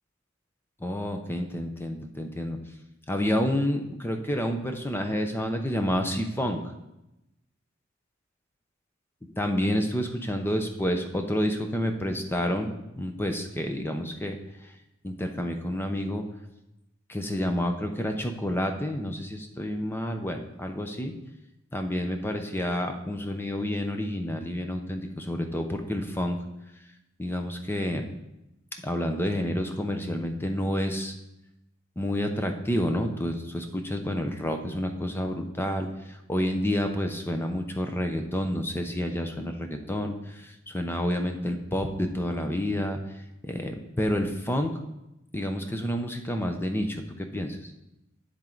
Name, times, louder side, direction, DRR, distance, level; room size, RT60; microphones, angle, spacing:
voice 1, 0.8-2.6 3.1-6.6 9.4-12.7 13.0-14.4 15.0-16.2 17.1-21.1 21.7-26.4 27.2-28.0 28.8-31.1 32.0-35.9 36.3-43.0 43.5-44.7 45.3-47.6, equal, 10° left, 5 dB, 0.7 m, -29 dB
8.9 x 7.5 x 3.9 m, 0.92 s
head